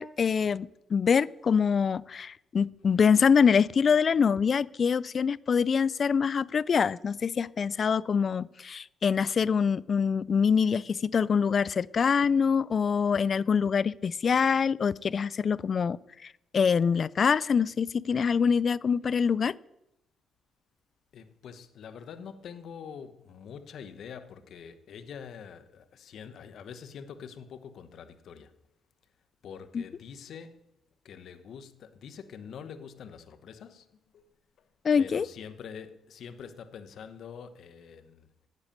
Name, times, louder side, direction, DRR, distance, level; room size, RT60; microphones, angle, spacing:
voice 1, 0.0-19.5 29.7-29.8 34.8-35.3, left 6 dB, 45° left, 0.4 m, -25 dB
voice 2, 21.1-28.6 29.4-30.6 31.0-34.7 35.0-38.3, left 7 dB, 65° left, 1.0 m, -45 dB
10.5 x 8.2 x 8.6 m
cardioid pair, 90°, 0 cm